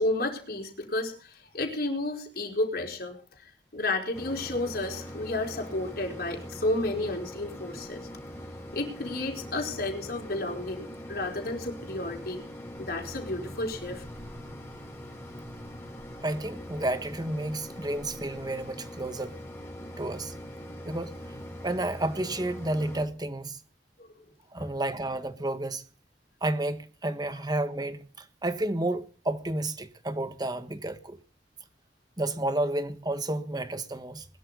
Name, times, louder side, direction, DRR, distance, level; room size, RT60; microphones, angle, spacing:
voice 1, 0.0-8.1 8.7-12.4 12.8-14.0 24.0-24.1 24.6-24.7, left 2 dB, 60° left, 4.4 m, -32 dB
Mechanisms, 4.1-23.1, equal, 15° left, 4.2 m, -42 dB
voice 2, 16.2-19.4 20.0-20.3 20.8-21.1 21.6-23.6 24.5-25.8 26.4-31.2 32.2-34.3, right 1 dB, 25° right, 1.5 m, -31 dB
21.5 x 12.5 x 4.0 m
head